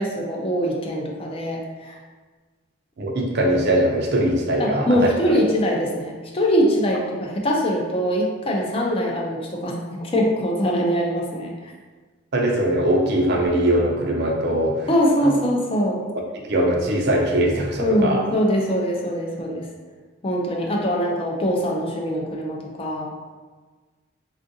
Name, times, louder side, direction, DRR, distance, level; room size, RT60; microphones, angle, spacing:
voice 1, 0.0-2.0 4.6-11.7 14.9-16.0 17.8-19.7 20.2-23.1, equal, 30° left, -1 dB, 0.4 m, -23 dB
voice 2, 3.0-4.9 5.3-5.4 12.3-14.9 15.2-15.3 16.3-18.2, right 1 dB, 60° right, 0 dB, 0.5 m, -21 dB
3.5 x 2.4 x 2.6 m, 1.4 s
head